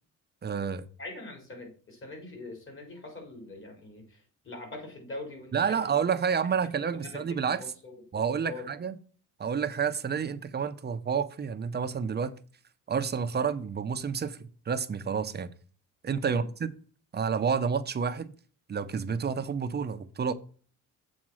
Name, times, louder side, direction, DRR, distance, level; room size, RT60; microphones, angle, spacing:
voice 1, 0.4-0.9 5.5-7.6 8.1-9.0 9.4-12.3 12.9-15.5 16.0-16.4 17.1-18.3 18.7-20.3, right 6 dB, 30° right, 0.7 m, -29 dB
voice 2, 1.0-6.0 6.9-8.0 8.4-8.7 16.3-16.5, left 2 dB, 40° left, 4.4 m, -43 dB
7.5 x 4.2 x 6.2 m
cardioid pair, 115°, 33 cm